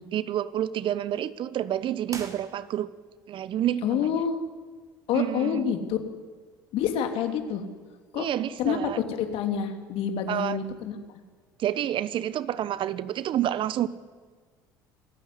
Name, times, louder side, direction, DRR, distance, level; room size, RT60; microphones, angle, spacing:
voice 1, 0.1-2.9 3.3-4.2 5.1-5.7 8.1-9.0 10.3-10.6 11.6-13.9, right 11 dB, 50° right, 16 dB, 1.1 m, -29 dB
sound 1, 2.0-3.1, right 4 dB, 30° right, 3.6 m, -42 dB
voice 2, 3.8-4.4 5.1-6.0 6.7-7.6 8.1-8.3 8.6-11.2, left 8 dB, 60° left, 6 dB, 3.1 m, -28 dB
26.5 x 15.0 x 9.7 m, 1.5 s
hypercardioid pair, 65°, 11 cm